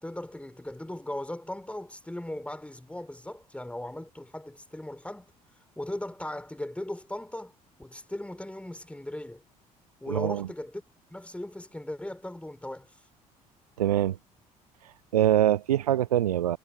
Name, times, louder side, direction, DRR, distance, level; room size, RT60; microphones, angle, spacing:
voice 1, 0.0-5.3 5.8-9.4 10.0-10.8 11.1-12.9, left 1 dB, 5° left, 4.3 m, -38 dB
voice 2, 10.1-10.5 13.8-14.2 15.1-16.6, right 11 dB, 80° right, 0.4 m, -24 dB
figure-of-eight pair, 50°, 19 cm